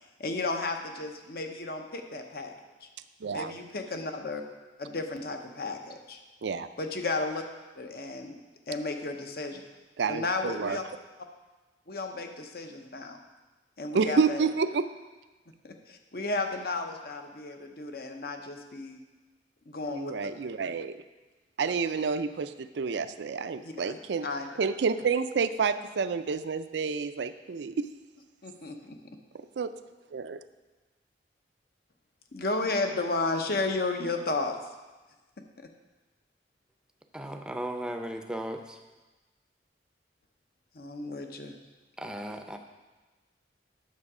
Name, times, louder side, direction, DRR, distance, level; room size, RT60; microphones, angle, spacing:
voice 1, 0.2-2.5 2.8-2.9 3.3-4.4 4.8-6.2 6.8-7.4 7.8-8.4 8.7-9.6 10.1-10.8 11.9-13.2 13.8-14.4 15.6-19.0 19.7-20.1 23.6-24.5 28.4-29.0 32.3-34.6 35.6-35.7 40.7-41.5, left 3 dB, 55° left, 5 dB, 0.9 m, -33 dB
voice 2, 3.2-3.5 6.4-6.7 10.0-10.8 13.9-14.9 19.9-21.0 21.6-24.3 24.6-27.9 29.3-29.7 30.1-30.4, right 5 dB, 80° right, 11 dB, 0.4 m, -29 dB
voice 3, 37.1-38.8 42.0-42.6, right 1 dB, 5° right, 5 dB, 0.5 m, -36 dB
9.5 x 7.0 x 4.9 m, 1.2 s
head